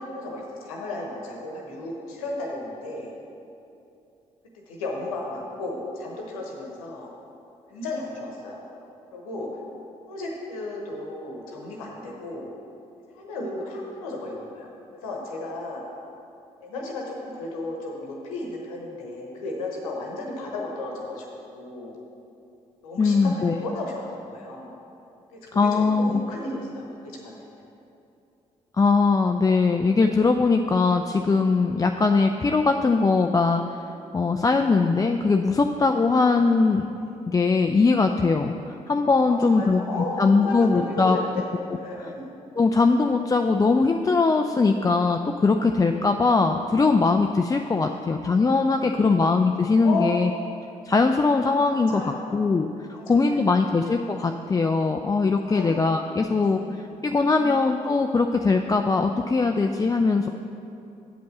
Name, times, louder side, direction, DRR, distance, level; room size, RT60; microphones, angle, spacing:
voice 1, 0.1-3.1 4.7-7.1 7.7-8.6 9.1-9.5 10.1-12.5 13.1-15.8 16.6-21.9 22.8-24.7 25.5-27.6 39.3-41.4 41.7-42.3 47.8-48.1 48.9-49.1 49.8-50.4 51.7-52.5 52.9-53.8 55.5-55.8 56.6-56.7 57.0-57.1 57.3-57.7, left 2 dB, 85° left, -1 dB, 1.1 m, -34 dB
voice 2, 23.0-23.6 25.5-26.2 28.8-33.6 34.1-36.9 37.3-38.6 38.9-39.8 40.2-41.2 42.6-50.3 50.9-52.7 53.1-56.6 57.0-60.3, left 4 dB, 20° left, 4 dB, 0.4 m, -21 dB
8.0 x 5.2 x 6.6 m, 2.7 s
hypercardioid pair, 40°, 18 cm